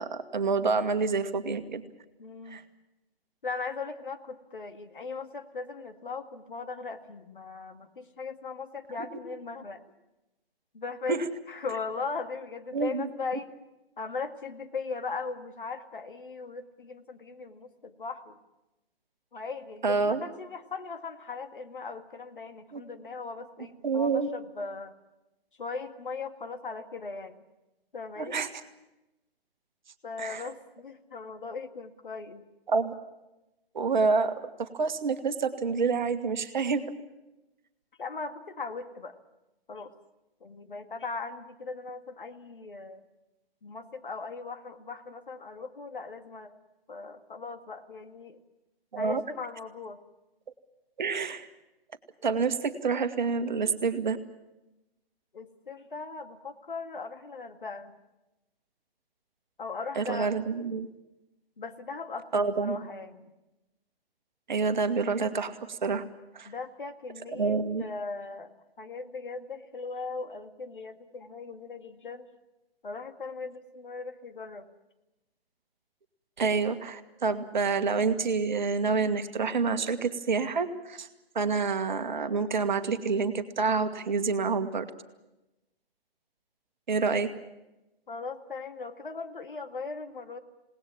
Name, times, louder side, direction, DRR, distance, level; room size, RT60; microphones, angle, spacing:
voice 1, 0.0-1.8 2.5-2.6 11.1-11.3 12.7-13.1 19.8-20.3 22.7-22.8 23.8-24.3 28.2-28.5 30.2-30.4 32.7-32.9 33.7-34.3 34.6-36.8 48.9-49.2 51.0-51.5 52.2-54.2 59.9-60.9 62.3-62.8 64.5-66.0 66.3-66.5 67.3-67.8 76.4-81.1 81.3-84.9 86.9-87.3, right 4 dB, 50° right, 9 dB, 1.7 m, -28 dB
voice 2, 2.2-2.6 3.4-9.8 10.7-13.5 14.0-18.4 19.3-24.9 25.6-27.4 27.9-28.4 30.0-32.4 38.0-39.1 39.7-39.9 40.4-43.0 43.6-46.5 46.9-48.4 49.0-50.0 55.3-58.0 59.6-60.3 61.6-63.3 66.5-68.5 68.8-72.3 72.8-74.7 88.1-90.4, left 4 dB, 55° left, 7 dB, 2.0 m, -38 dB
27.5 x 19.0 x 7.3 m, 0.97 s
figure-of-eight pair, 135°, 30 cm